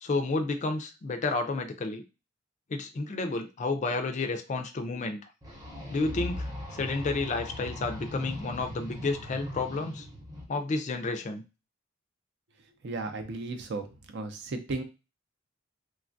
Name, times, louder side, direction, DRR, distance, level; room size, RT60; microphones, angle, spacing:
voice 1, 0.0-2.0 2.7-5.2 5.9-10.1 10.5-11.4, left 3 dB, 35° left, 6 dB, 0.4 m, -31 dB
sound 1, 5.4-10.4, left 1 dB, 20° right, 0.7 m, -39 dB
voice 2, 12.8-13.9 14.1-14.8, right 3 dB, 60° right, 7 dB, 0.5 m, -34 dB
3.2 x 2.2 x 2.5 m, 0.29 s
head